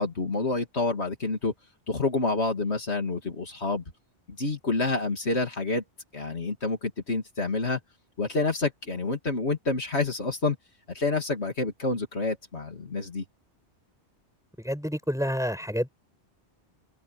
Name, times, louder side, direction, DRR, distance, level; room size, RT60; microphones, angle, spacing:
voice 1, 0.0-1.5 1.9-3.8 4.3-5.8 6.1-7.8 8.2-10.6 10.9-13.2, left 3 dB, 70° left, 3.0 m, -28 dB
voice 2, 14.6-15.9, equal, 5° right, 7.1 m, -28 dB
omnidirectional pair, 1.2 m